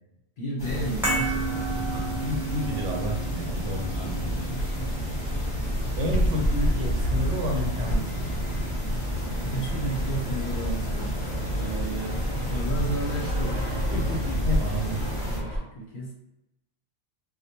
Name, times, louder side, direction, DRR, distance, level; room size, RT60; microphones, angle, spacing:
voice 1, 0.4-1.9 3.9-4.8 9.4-14.8 15.3-16.1, right 1 dB, 55° left, -2 dB, 0.7 m, -34 dB
sound 1, 0.6-15.4, equal, 25° left, 0.8 m, -31 dB
sound 2, 1.0-7.4 7.7-7.9, right 4 dB, ahead, 0.6 m, -34 dB
voice 2, 1.9-4.3 6.0-8.4 14.4-15.0, left 1 dB, 90° right, 1 dB, 1.0 m, -31 dB
Fixed-wing aircraft airplane, 4.5-15.6, equal, 65° right, 1.1 m, -30 dB
2.2 x 2.1 x 2.8 m, 0.89 s
omnidirectional pair, 1.2 m